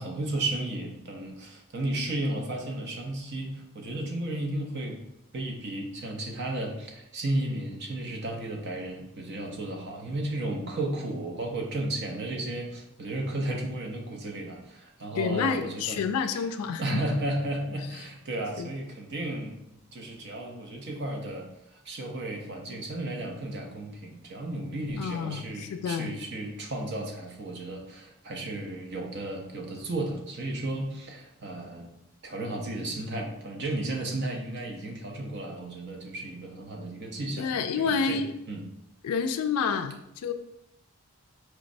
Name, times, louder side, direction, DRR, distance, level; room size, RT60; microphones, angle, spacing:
voice 1, 0.0-5.0 5.3-16.0 16.3-16.4 16.8-19.5 19.9-31.9 32.2-38.2 38.5-38.6, right 1 dB, 50° right, 2 dB, 0.6 m, -34 dB
voice 2, 15.2-17.0 18.6-18.7 25.0-26.2 37.4-38.3 39.0-40.3, left 5 dB, 85° left, 10 dB, 0.3 m, -29 dB
4.6 x 3.0 x 2.6 m, 0.83 s
head